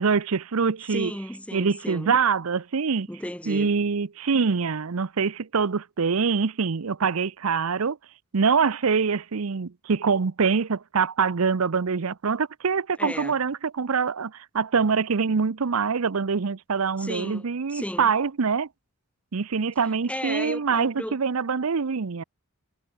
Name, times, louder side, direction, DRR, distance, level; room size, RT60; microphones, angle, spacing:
voice 1, 0.0-1.1 1.5-3.1 3.5-8.0 8.3-18.7 19.3-22.2, right 5 dB, 75° right, 0.7 m, -24 dB
voice 2, 0.9-2.2 3.1-3.8 13.0-13.4 17.0-18.1 20.1-21.2, left 1 dB, 5° left, 1.9 m, -35 dB
head